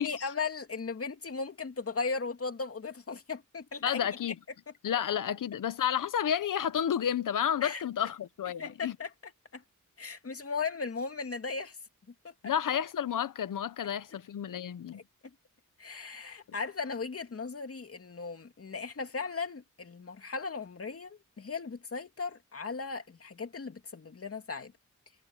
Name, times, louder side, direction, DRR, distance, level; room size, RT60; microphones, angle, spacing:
voice 1, 0.0-4.0 7.6-7.8 8.6-9.1 9.5-9.6 10.0-11.8 12.2-12.3 14.9-15.0 15.8-24.7, left 4 dB, 45° left, 2.6 m, -37 dB
voice 2, 3.8-4.3 4.8-9.0 12.4-15.0, left 9 dB, 80° left, 1.1 m, -31 dB
cardioid pair, 80°, 31 cm